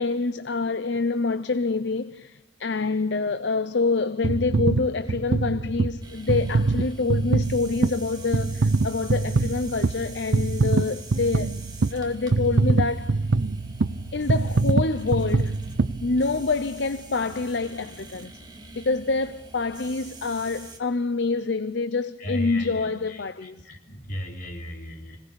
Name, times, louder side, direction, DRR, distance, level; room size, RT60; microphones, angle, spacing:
voice 1, 0.0-11.6 11.9-13.2 14.1-15.5 16.0-18.3 18.7-23.6, left 3 dB, 65° left, 0.7 m, -26 dB
sound 1, 4.2-16.6 17.2-17.3, right 3 dB, 90° right, 0.6 m, -24 dB
sound 2, 6.0-20.8, right 3 dB, 25° right, 2.5 m, -45 dB
voice 2, 22.2-25.2, equal, 50° left, 3.6 m, -36 dB
26.0 x 18.5 x 6.9 m
head